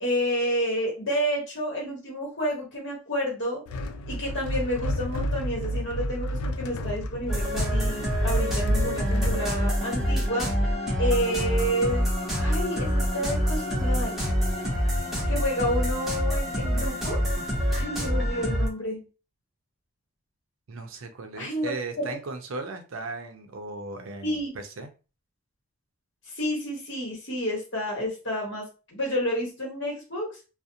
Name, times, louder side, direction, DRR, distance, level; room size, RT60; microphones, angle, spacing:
voice 1, 0.0-3.6 4.1-10.5 11.0-12.1 12.4-14.2 15.3-17.2 17.7-19.0 21.3-22.1 24.2-24.5 26.3-30.4, equal, 55° left, -2 dB, 1.1 m, -30 dB
sound 1, 3.7-9.5, equal, 85° left, 0.3 m, -31 dB
sound 2, 7.3-18.7, equal, ahead, 0.6 m, -26 dB
voice 2, 20.7-24.9, right 3 dB, 65° right, 6 dB, 0.5 m, -37 dB
2.4 x 2.0 x 2.7 m, 0.33 s
head